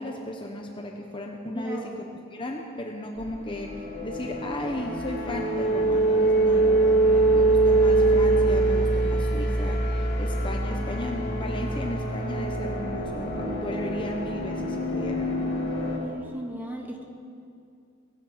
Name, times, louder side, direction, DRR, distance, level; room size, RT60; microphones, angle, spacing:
voice 1, 0.0-2.0 2.3-15.3, left 1 dB, 25° left, 2 dB, 1.0 m, -35 dB
voice 2, 1.5-1.9 16.0-17.0, equal, 10° right, 1 dB, 1.7 m, -36 dB
sound 1, 3.2-16.0, right 2 dB, 55° left, 3.4 m, -24 dB
18.0 x 16.0 x 5.1 m, 2.4 s
head